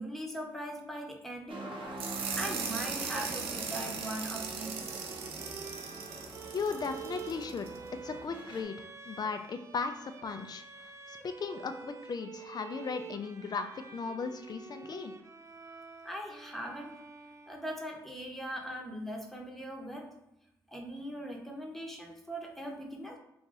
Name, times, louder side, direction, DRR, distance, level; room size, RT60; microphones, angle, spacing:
voice 1, 0.0-1.6 2.4-4.7 16.0-16.9 17.5-20.1 20.7-23.2, right 1 dB, ahead, 0 dB, 0.9 m, -40 dB
sound 1, 1.5-8.6, right 2 dB, 60° right, 0.9 m, -44 dB
sound 2, 2.0-7.8, right 6 dB, 80° right, 0.5 m, -39 dB
sound 3, 2.3-18.0, right 5 dB, 30° right, 0.5 m, -48 dB
voice 2, 6.5-7.7 8.0-15.1, left 5 dB, 45° left, 8 dB, 0.5 m, -37 dB
2.6 x 2.5 x 3.9 m, 0.85 s
supercardioid pair, 50°, 9 cm